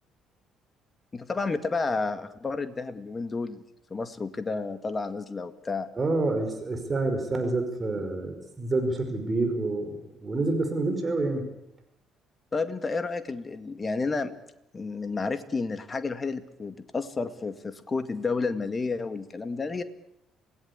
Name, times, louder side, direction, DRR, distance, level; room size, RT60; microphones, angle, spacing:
voice 1, 1.1-3.6 3.9-5.9 12.5-14.3 14.7-19.8, left 4 dB, 25° left, 11 dB, 2.1 m, -31 dB
voice 2, 6.0-11.5, right 2 dB, 25° right, 6 dB, 5.4 m, -28 dB
27.0 x 18.0 x 8.6 m, 0.84 s
figure-of-eight pair, 50°, 0 cm